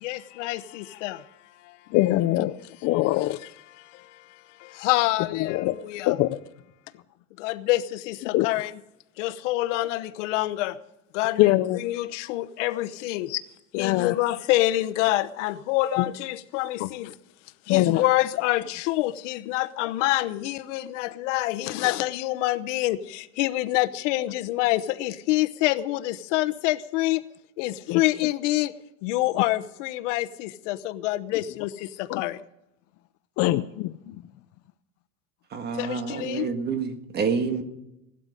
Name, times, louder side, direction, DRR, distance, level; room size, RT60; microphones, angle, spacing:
voice 1, 0.0-1.9 3.8-6.1 7.4-8.7 9.2-10.8 11.1-13.3 13.8-17.1 17.6-27.2 27.6-28.7 29.0-32.4 35.7-36.5, left 17 dB, 90° left, 1.0 m, -27 dB
voice 2, 1.9-2.5 2.8-3.4 5.4-5.7 6.1-6.4 8.3-8.5 11.4-11.8 13.3-13.4 13.7-14.1 16.0-16.1 16.8-16.9 17.7-18.0 27.9-28.0 32.1-32.2 33.4-34.2, left 16 dB, 45° left, 0.5 m, -23 dB
voice 3, 35.5-37.6, right 5 dB, 30° right, 1.6 m, -28 dB
17.0 x 12.5 x 5.1 m
cardioid pair, 160°, 35 cm